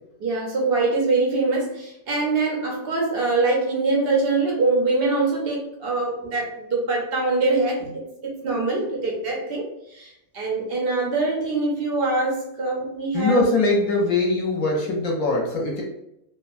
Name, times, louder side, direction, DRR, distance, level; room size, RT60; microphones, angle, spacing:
voice 1, 0.2-13.4, right 3 dB, 70° right, -2 dB, 0.5 m, -24 dB
voice 2, 13.1-15.8, left 2 dB, 70° left, -1 dB, 1.0 m, -22 dB
2.8 x 2.2 x 2.4 m, 0.83 s
omnidirectional pair, 1.7 m